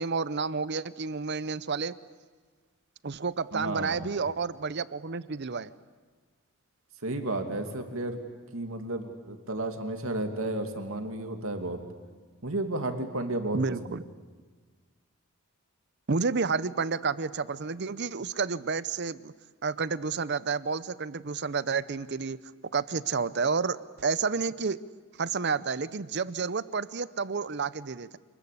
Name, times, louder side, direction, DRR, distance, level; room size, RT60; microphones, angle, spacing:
voice 1, 0.0-1.9 3.0-5.7 13.5-14.0 16.1-19.3 19.6-22.4 22.7-24.8 25.2-28.2, right 4 dB, 50° right, 17 dB, 0.7 m, -30 dB
voice 2, 3.5-4.1 7.0-8.2 8.5-11.8 12.4-13.6 13.9-14.0, right 2 dB, 70° right, 6 dB, 2.6 m, -32 dB
27.5 x 21.0 x 8.6 m, 1.5 s
head